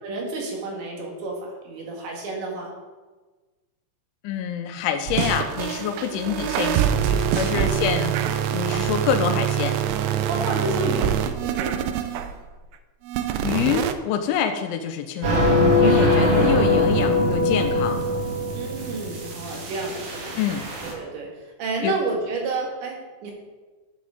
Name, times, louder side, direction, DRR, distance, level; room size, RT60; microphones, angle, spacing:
voice 1, 0.0-2.7 6.1-6.6 7.5-7.7 10.3-11.8 18.6-20.3 20.8-23.3, right 3 dB, 70° right, 0 dB, 3.9 m, -31 dB
voice 2, 4.2-9.8 13.4-18.0 20.4-20.7 21.8-22.0, left 8 dB, 85° left, 7 dB, 3.0 m, -26 dB
sound 1, 5.1-12.5 13.1-13.9, right 10 dB, 90° right, 2.3 m, -25 dB
sound 2, 15.2-20.9, left 1 dB, 55° right, 2.4 m, -21 dB
12.0 x 8.2 x 3.7 m, 1.3 s
omnidirectional pair, 5.5 m